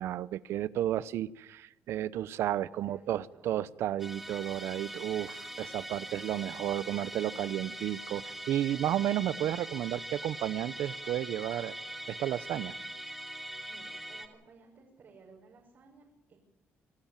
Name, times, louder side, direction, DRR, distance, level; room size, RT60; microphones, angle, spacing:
voice 1, 0.0-11.7 12.1-12.8, right 12 dB, 80° right, 20 dB, 0.7 m, -32 dB
voice 2, 2.7-3.6 13.7-16.4, right 4 dB, 55° right, -2 dB, 5.8 m, -57 dB
Musical instrument, 4.0-14.3, right 1 dB, 5° right, 2.8 m, -42 dB
26.5 x 13.0 x 9.0 m, 0.95 s
cardioid pair, 120°, 4 cm